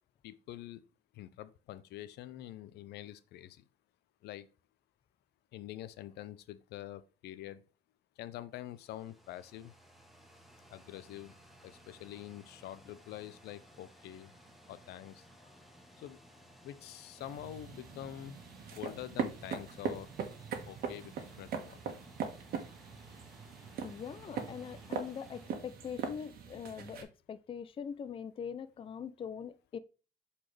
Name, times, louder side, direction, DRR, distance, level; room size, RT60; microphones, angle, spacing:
voice 1, 0.2-0.8 1.1-3.7 4.2-4.5 5.5-7.6 8.2-9.7 10.7-11.4 11.6-14.3 14.7-15.3 16.0-16.2 16.6-18.4 18.7-20.1 20.7-21.8, left 13 dB, 75° left, 0.7 m, -46 dB
sound 1, 8.5-26.6, equal, ahead, 1.4 m, -59 dB
sound 2, 17.2-27.0, right 6 dB, 60° right, 1.6 m, -41 dB
voice 2, 23.8-29.8, left 7 dB, 30° left, 0.5 m, -42 dB
7.5 x 4.2 x 3.3 m
cardioid pair, 110°, 17 cm